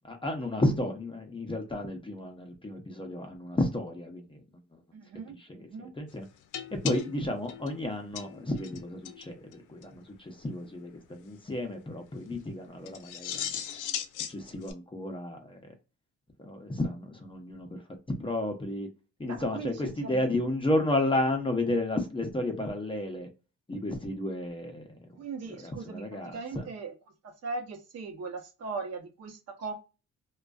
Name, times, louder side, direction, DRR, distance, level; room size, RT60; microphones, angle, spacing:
voice 1, 0.0-4.4 4.7-4.8 5.4-6.3 6.7-13.6 14.3-15.6 16.4-17.8 18.1-18.9 19.2-23.3 23.7-25.2 25.6-26.7, left 1 dB, 15° left, 0.6 m, -32 dB
voice 2, 4.9-5.9 19.2-20.3 25.2-26.9 27.2-29.8, right 4 dB, 55° right, 0.8 m, -39 dB
sound 1, 6.5-8.8 9.0-9.3 9.5-9.6 9.8-9.9 12.9-14.7, left 9 dB, 80° left, 0.5 m, -37 dB
2.4 x 2.3 x 2.3 m
cardioid pair, 90°, 30 cm